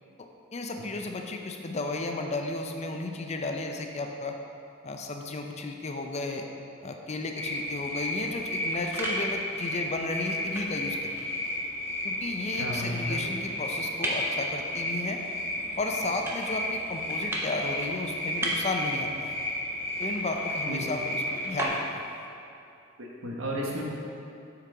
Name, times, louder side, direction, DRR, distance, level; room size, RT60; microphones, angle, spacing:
voice 1, 0.2-4.4 4.8-6.5 6.8-11.3 12.0-15.2 15.8-19.3 20.0-21.8, left 2 dB, 30° left, 3 dB, 0.5 m, -33 dB
sound 1, 7.4-21.7, left 1 dB, 15° left, 1.2 m, -33 dB
sound 2, 8.3-22.3, right 1 dB, 10° right, 0.6 m, -39 dB
voice 2, 12.6-13.2 20.7-20.8 23.0-23.8, equal, 70° right, -3 dB, 1.1 m, -33 dB
8.1 x 4.7 x 3.7 m, 2.6 s
head